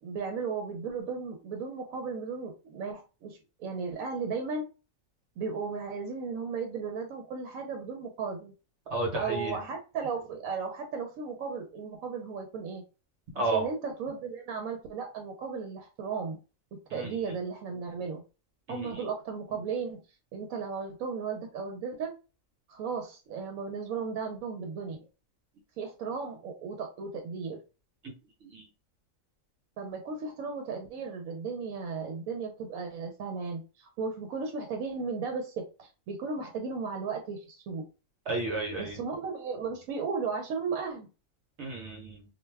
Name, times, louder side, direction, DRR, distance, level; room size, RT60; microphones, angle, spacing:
voice 1, 0.0-4.6 5.4-8.5 9.1-12.8 13.4-16.4 16.7-18.2 18.7-20.0 20.3-22.1 22.7-25.0 25.8-27.6 29.8-37.9 38.8-41.1, right 5 dB, 85° right, 3 dB, 1.0 m, -35 dB
voice 2, 8.9-9.6 13.3-13.7 16.9-17.2 18.7-19.1 28.0-28.1 28.4-28.6 38.3-39.0 41.6-42.2, right 2 dB, 60° right, 1 dB, 1.1 m, -32 dB
2.5 x 2.1 x 3.3 m, 0.32 s
omnidirectional pair, 1.4 m